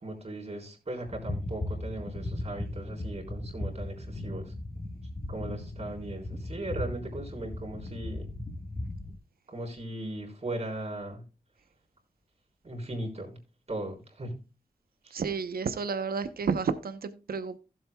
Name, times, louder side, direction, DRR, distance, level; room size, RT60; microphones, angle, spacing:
voice 1, 0.0-4.5 5.3-8.3 9.5-11.2 12.6-13.3 13.7-14.3, right 1 dB, 45° right, 4.0 m, -38 dB
sound 1, 1.1-9.1, left 1 dB, 25° left, 1.1 m, -37 dB
voice 2, 15.1-17.6, right 5 dB, 80° right, 0.8 m, -31 dB
16.0 x 7.5 x 2.2 m
wide cardioid pair, 80°, 15 cm